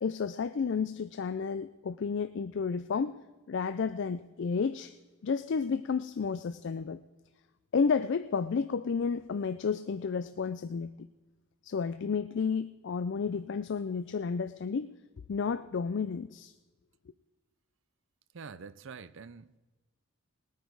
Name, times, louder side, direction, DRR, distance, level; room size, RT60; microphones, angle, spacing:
voice 1, 0.0-3.1 3.5-4.9 5.2-7.0 7.7-11.1 11.6-14.9 15.3-16.5, left 5 dB, 55° left, 0.4 m, -31 dB
voice 2, 18.3-19.6, right 5 dB, 60° right, 0.5 m, -46 dB
20.0 x 9.3 x 4.6 m
head